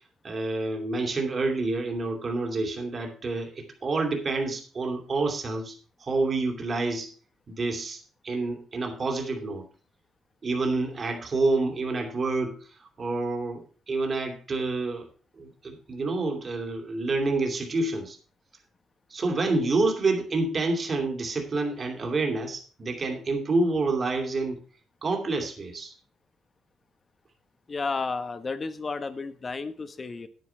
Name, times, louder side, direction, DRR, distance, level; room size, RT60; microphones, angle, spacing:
voice 1, 0.2-5.7 6.0-7.1 7.5-9.6 10.4-12.6 13.0-15.1 15.4-18.2 19.1-24.6 25.0-25.9, right 3 dB, 40° right, 2 dB, 2.6 m, -28 dB
voice 2, 27.7-30.3, left 4 dB, 35° left, 10 dB, 1.1 m, -32 dB
9.5 x 9.4 x 4.4 m, 0.40 s
cardioid pair, 90°, 0 cm